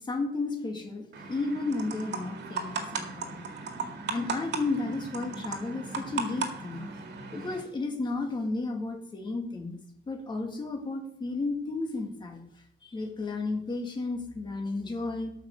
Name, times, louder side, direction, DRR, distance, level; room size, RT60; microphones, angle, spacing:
voice 1, 0.0-3.4 4.1-6.8 7.3-9.8 10.1-12.4 12.8-15.3, left 3 dB, 25° left, 3 dB, 1.9 m, -33 dB
sound 1, 1.1-7.6, right 4 dB, 70° right, 2.0 m, -36 dB
13.0 x 5.6 x 6.5 m, 0.67 s
wide cardioid pair, 170°, 19 cm